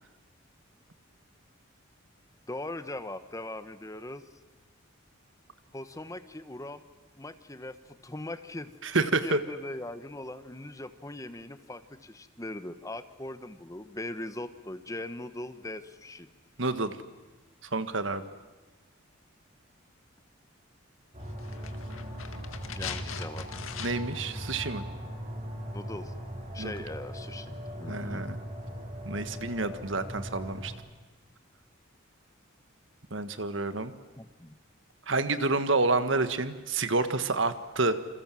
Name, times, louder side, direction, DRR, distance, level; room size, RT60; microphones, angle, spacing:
voice 1, 2.5-4.3 5.7-6.8 7.2-16.3 22.8-23.5 25.7-26.1 26.5-28.3 34.2-34.5, left 1 dB, 15° left, 11 dB, 1.1 m, -40 dB
voice 2, 8.8-9.4 16.6-16.9 17.7-18.2 23.8-24.8 26.6-26.7 27.9-28.4 29.0-30.7 33.1-33.9 35.1-38.0, right 3 dB, 65° right, 11 dB, 1.6 m, -28 dB
sound 1, 21.1-30.8, equal, 35° right, 5.3 m, -39 dB
sound 2, 21.4-24.2 24.5-24.6, left 7 dB, 85° left, 1.9 m, -41 dB
28.0 x 27.5 x 7.7 m, 1.2 s
head